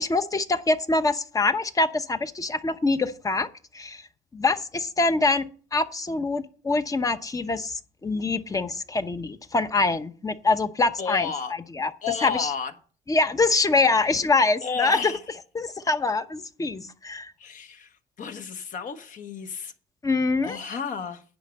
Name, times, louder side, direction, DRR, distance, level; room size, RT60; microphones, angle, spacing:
voice 1, 0.0-3.5 3.7-4.1 4.3-5.4 5.7-11.3 11.7-11.9 12.2-12.5 13.1-15.1 15.5-17.3 20.0-20.6, left 3 dB, 20° left, 0.9 m, -24 dB
voice 2, 11.0-11.5 12.0-12.7 14.6-15.2 17.4-19.7 20.4-21.2, left 6 dB, 50° left, 1.4 m, -32 dB
10.5 x 5.1 x 7.7 m
cardioid pair, 110°, 17 cm